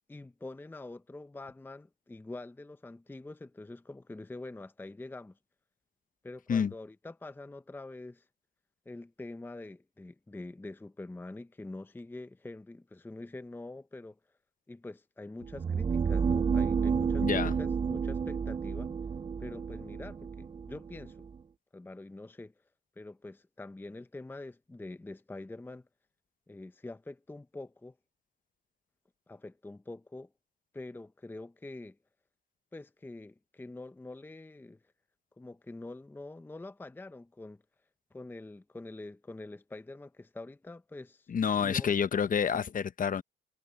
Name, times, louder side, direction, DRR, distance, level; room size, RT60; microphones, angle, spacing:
voice 1, 0.1-5.4 6.2-8.2 8.9-14.2 14.7-18.9 19.4-21.3 21.7-22.5 23.0-25.9 26.5-28.0 29.3-30.3 30.7-32.0 32.7-34.8 35.4-37.6 38.1-41.9, left 2 dB, 10° left, 0.7 m, -45 dB
sound 1, 15.4-21.4, right 6 dB, 25° right, 0.4 m, -31 dB
voice 2, 17.2-17.6 41.3-43.2, left 7 dB, 45° left, 1.0 m, -28 dB
cardioid pair, 90°, 20 cm